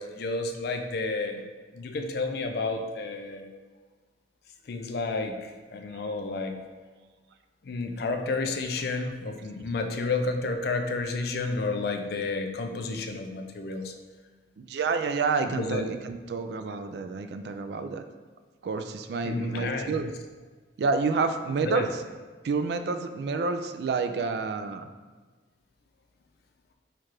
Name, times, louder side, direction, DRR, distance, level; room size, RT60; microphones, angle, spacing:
voice 1, 0.0-1.4 1.7-3.5 4.7-6.6 7.6-13.9 15.6-15.8 19.2-20.0 21.6-21.9, left 3 dB, 60° left, 6 dB, 0.4 m, -31 dB
voice 2, 14.6-18.0 18.6-20.1 20.8-22.0 22.4-24.9, right 4 dB, 60° right, 8 dB, 0.3 m, -29 dB
4.5 x 2.4 x 4.6 m, 1.3 s
head